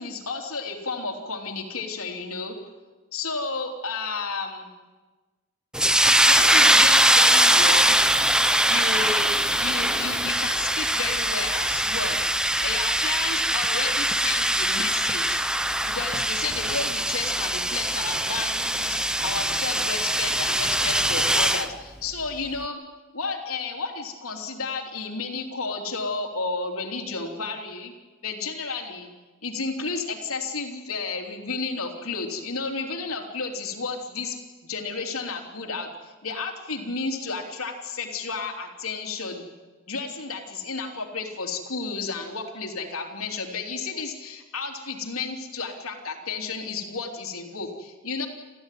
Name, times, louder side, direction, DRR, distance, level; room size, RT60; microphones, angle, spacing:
voice 1, 0.0-2.6 3.1-4.7 6.2-8.0 8.7-12.2 12.6-15.4 15.9-22.8 23.1-27.9 28.2-29.1 29.4-34.4 34.6-39.4 39.9-48.3, left 4 dB, 90° left, 2 dB, 3.4 m, -32 dB
sound 1, 5.7-21.7, right 1 dB, 5° right, 0.7 m, -22 dB
29.5 x 14.0 x 9.3 m, 1.3 s
head